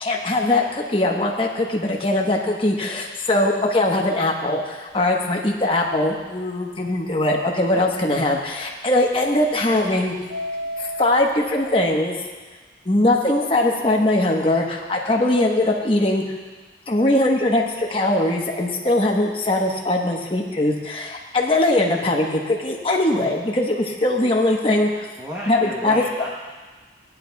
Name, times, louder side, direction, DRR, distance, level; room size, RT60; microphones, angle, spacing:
voice 1, 0.0-10.1 10.8-12.2 12.8-16.2 16.9-24.9 25.5-26.0, left 1 dB, 30° left, 0 dB, 1.1 m, -21 dB
Subway metro underground, 5.1-5.2 5.6-5.7 6.0-6.1 6.6-6.7 9.2-9.9 10.2-11.9, equal, 55° right, 1.9 m, -33 dB
voice 2, 25.2-26.3, equal, 10° right, -6 dB, 0.9 m, -33 dB
17.0 x 10.5 x 2.3 m, 1.3 s
head